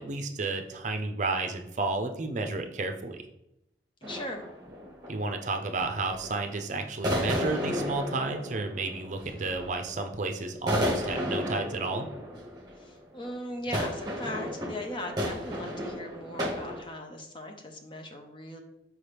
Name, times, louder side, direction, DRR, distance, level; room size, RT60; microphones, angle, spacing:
voice 1, 0.0-3.2 5.1-12.1, right 3 dB, 40° right, 5 dB, 0.6 m, -32 dB
voice 2, 4.0-4.4 12.8-18.6, left 1 dB, 30° left, 4 dB, 0.7 m, -39 dB
sound 1, 4.0-5.3 5.7-6.3 7.0-10.0 10.5-16.8, equal, 25° right, 1.2 m, -33 dB
5.9 x 4.8 x 3.4 m, 0.84 s
head